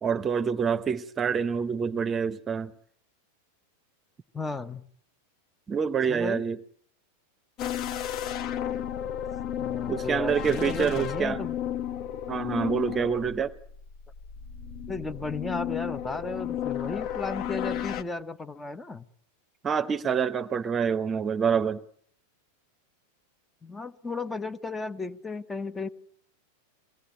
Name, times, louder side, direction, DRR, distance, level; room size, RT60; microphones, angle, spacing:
voice 1, 0.0-2.7 5.7-6.6 9.9-11.4 12.3-13.6 19.6-21.8, right 6 dB, 20° right, 1.0 m, -27 dB
voice 2, 4.3-4.8 6.1-6.4 9.6-11.6 14.9-19.0 23.6-25.9, left 3 dB, 10° left, 1.1 m, -34 dB
sound 1, 7.6-18.0, left 10 dB, 40° left, 1.2 m, -33 dB
24.0 x 17.5 x 9.6 m
figure-of-eight pair, 90°, 0 cm